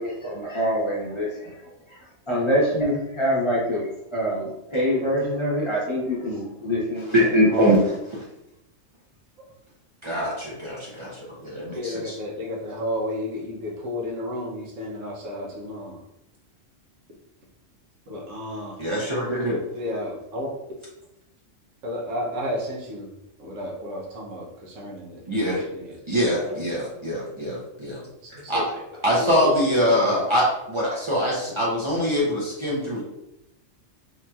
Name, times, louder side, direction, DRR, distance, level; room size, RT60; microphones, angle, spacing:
voice 1, 0.0-7.7, equal, 30° left, -6 dB, 0.7 m, -26 dB
voice 2, 7.1-7.8 10.0-12.1 18.8-19.6 25.3-25.6 26.1-28.0 28.5-28.6 29.0-33.0, equal, 45° right, -5 dB, 0.3 m, -23 dB
voice 3, 11.7-16.0 18.1-18.8 19.7-20.5 21.8-25.2 25.5-26.0 26.4-26.6 28.2-28.7 29.1-30.2, left 1 dB, 80° right, -3 dB, 1.1 m, -32 dB
2.9 x 2.7 x 2.3 m, 0.86 s
omnidirectional pair, 1.3 m